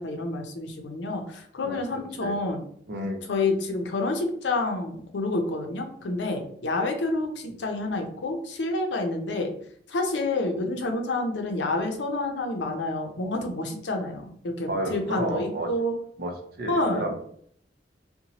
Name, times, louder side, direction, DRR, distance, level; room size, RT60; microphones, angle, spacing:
voice 1, 0.0-2.6 3.3-9.5 9.9-16.0 16.7-17.0, left 2 dB, 90° left, 4 dB, 0.5 m, -28 dB
voice 2, 1.6-2.4 2.9-3.2 14.7-15.7 16.2-16.3 16.6-17.1, right 1 dB, 60° right, 3 dB, 0.6 m, -31 dB
2.7 x 2.1 x 2.8 m, 0.63 s
head